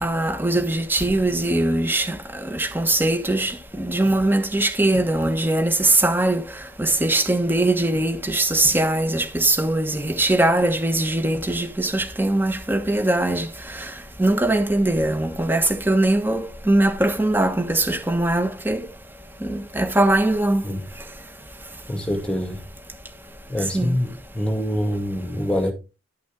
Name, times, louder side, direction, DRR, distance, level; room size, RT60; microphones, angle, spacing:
voice 1, 0.0-6.4 6.8-13.9 14.2-18.8 19.4-20.6 23.7-24.0, right 1 dB, 10° right, 1.2 m, -21 dB
voice 2, 21.9-22.6 23.5-25.7, equal, 5° left, 2.2 m, -25 dB
11.5 x 6.0 x 3.7 m
head